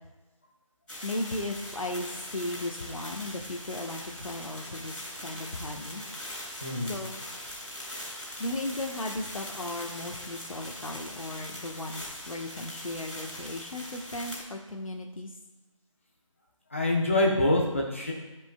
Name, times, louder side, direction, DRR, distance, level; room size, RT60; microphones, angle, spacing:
sound 1, 0.9-14.4, left 1 dB, 5° left, 2.6 m, -41 dB
voice 1, 1.0-6.0 6.9-7.2 8.4-15.3, left 1 dB, 80° left, 2 dB, 1.2 m, -36 dB
voice 2, 6.6-6.9 16.7-18.1, left 1 dB, 25° left, -1 dB, 0.9 m, -25 dB
12.5 x 5.4 x 2.3 m, 1.1 s
figure-of-eight pair, 180°, 17 cm